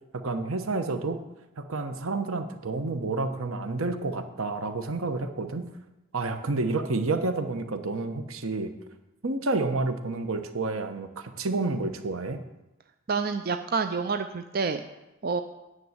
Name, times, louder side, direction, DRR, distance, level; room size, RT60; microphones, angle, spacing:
voice 1, 0.1-1.2 1.6-5.7 6.1-8.7 9.2-12.4, right 3 dB, 80° right, 8 dB, 1.1 m, -29 dB
voice 2, 13.1-14.8 15.2-15.4, right 4 dB, 45° right, 8 dB, 0.5 m, -28 dB
10.0 x 6.4 x 8.0 m, 0.99 s
head